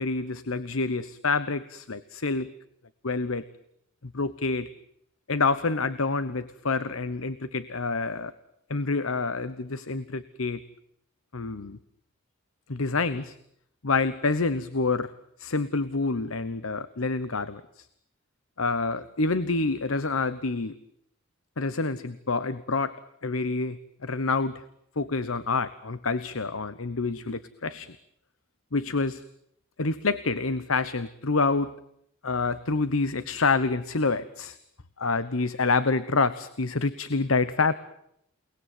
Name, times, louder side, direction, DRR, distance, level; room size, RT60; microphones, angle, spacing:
voice 1, 0.0-2.5 3.0-3.5 4.0-4.7 5.3-8.3 8.7-10.6 11.3-11.8 12.7-13.4 13.8-15.1 15.4-17.9 18.6-20.8 21.6-22.9 23.2-24.6 25.0-28.0 28.7-29.2 29.8-31.7 32.2-34.6 35.0-37.7, left 3 dB, 70° left, 15 dB, 1.1 m, -27 dB
29.5 x 20.0 x 9.3 m, 0.75 s
head